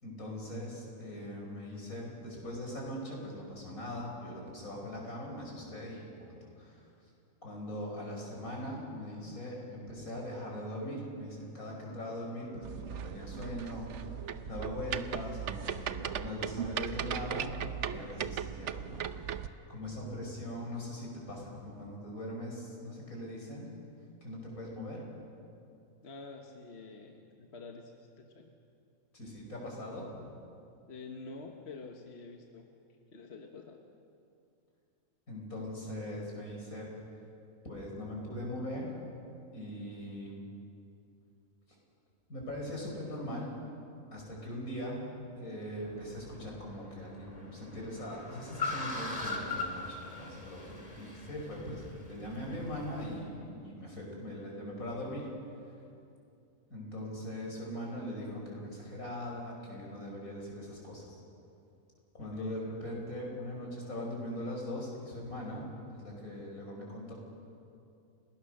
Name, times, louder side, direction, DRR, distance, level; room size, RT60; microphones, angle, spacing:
voice 1, 0.0-6.8 7.4-17.6 17.8-19.0 19.3-23.7 24.2-25.1 29.1-30.2 35.3-36.9 37.6-38.9 39.5-40.4 42.3-43.5 44.1-45.0 45.4-55.3 56.7-61.2 62.1-67.1, left 1 dB, 80° left, -1 dB, 6.0 m, -41 dB
sound 1, 12.6-19.5, right 8 dB, 60° right, 1.0 m, -38 dB
voice 2, 26.0-27.9 28.2-28.5 30.9-32.7 33.1-33.8 62.2-62.6, left 4 dB, 50° left, 3 dB, 1.6 m, -47 dB
Car, 45.8-53.2, left 3 dB, 25° left, 3.0 m, -41 dB
29.5 x 18.5 x 6.6 m, 2.5 s
omnidirectional pair, 1.4 m